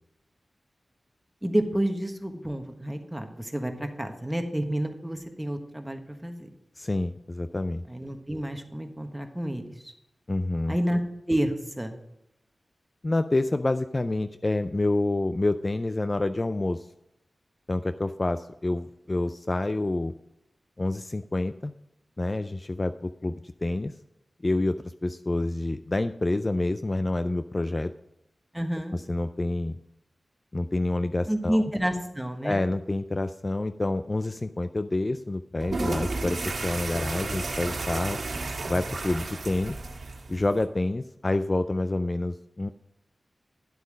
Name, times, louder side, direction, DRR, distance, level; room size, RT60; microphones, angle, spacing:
voice 1, 1.4-6.5 7.9-9.9 10.7-11.0 11.3-12.0 28.5-29.0 31.3-32.6, equal, 10° right, 5 dB, 1.3 m, -29 dB
voice 2, 6.8-7.8 10.3-10.8 13.0-16.9 17.7-20.1 20.8-21.7 22.2-23.9 24.4-27.9 28.9-29.8 30.5-31.6 32.4-38.2 38.7-39.8 40.3-42.7, left 2 dB, 30° left, 10 dB, 0.4 m, -28 dB
sound 1, 35.6-40.6, right 3 dB, 75° right, 1.6 m, -32 dB
11.0 x 8.0 x 5.1 m, 0.84 s
wide cardioid pair, 95°, 0 cm